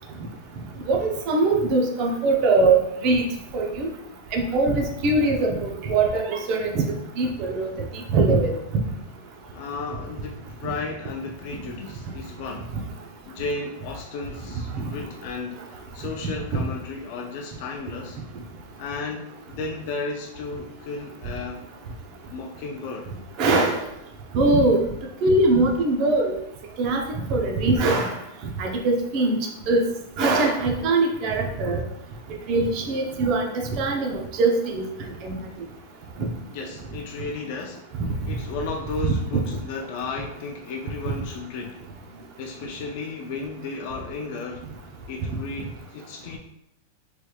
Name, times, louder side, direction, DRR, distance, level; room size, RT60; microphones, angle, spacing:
voice 1, 0.9-3.2 3.5-3.9 4.3-6.8 7.2-7.7 8.1-8.5 14.7-14.8 16.5-16.6 23.4-23.8 24.3-24.8 25.2-26.3 26.8-28.1 28.6-29.4 29.7-29.9 30.2-31.8 32.5-34.9 35.2-35.3 36.2-36.3, right 3 dB, 45° right, 2 dB, 0.6 m, -21 dB
voice 2, 9.5-12.7 13.3-18.2 18.8-21.7 22.3-23.1 36.5-37.9 38.3-41.8 42.4-44.7 45.1-46.4, left 4 dB, 55° left, 1 dB, 0.4 m, -34 dB
3.2 x 3.1 x 2.3 m, 0.79 s
hypercardioid pair, 125°, 0 cm